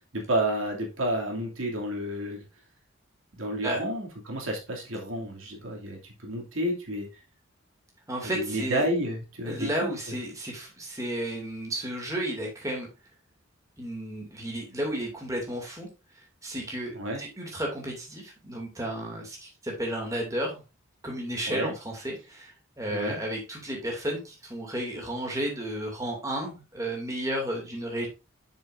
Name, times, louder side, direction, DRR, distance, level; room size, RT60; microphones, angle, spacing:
voice 1, 0.1-2.4 3.4-7.1 8.4-9.7 16.9-17.2 21.5-21.7 22.9-23.2, right 1 dB, 85° right, 0 dB, 2.6 m, -30 dB
voice 2, 8.1-8.9 9.5-12.9 13.8-15.9 16.4-20.6 21.0-28.1, right 1 dB, 15° right, -1 dB, 2.5 m, -33 dB
8.7 x 6.8 x 2.6 m, 0.28 s
head